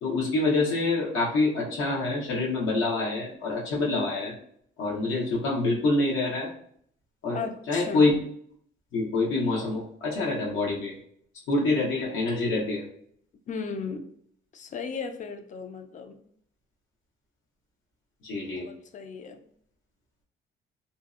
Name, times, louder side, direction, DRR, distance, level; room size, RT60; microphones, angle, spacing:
voice 1, 0.0-4.3 4.8-6.5 7.2-7.4 7.7-8.1 8.9-10.9 11.5-12.8 18.2-18.7, left 2 dB, 80° left, -4 dB, 0.8 m, -26 dB
voice 2, 7.3-8.1 13.5-14.1 14.5-16.2 18.5-19.4, left 5 dB, 40° left, 7 dB, 0.4 m, -36 dB
2.6 x 2.0 x 2.4 m, 0.64 s
cardioid pair, 90°, 20 cm